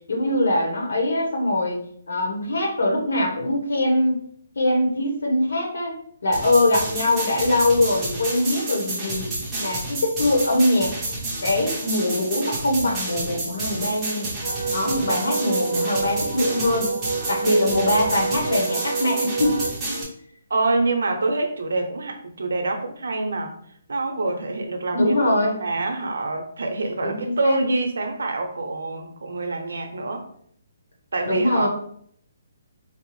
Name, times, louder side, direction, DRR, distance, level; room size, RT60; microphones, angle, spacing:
voice 1, 0.1-1.8 2.1-4.2 4.5-6.0 6.2-9.3 9.6-10.9 11.4-14.3 14.7-16.9 17.3-19.6 24.9-25.6 27.0-27.6 31.2-31.7, left 1 dB, 85° left, 1 dB, 1.1 m, -22 dB
sound 1, 6.3-20.0, right 2 dB, 5° right, 0.6 m, -30 dB
Wind instrument woodwind instrument, 14.4-19.7, right 4 dB, 55° right, 0.6 m, -28 dB
voice 2, 20.5-23.5 23.9-30.2 31.1-31.7, right 2 dB, 90° right, 4 dB, 0.7 m, -26 dB
4.5 x 2.0 x 3.1 m, 0.65 s
hypercardioid pair, 180°, 0 cm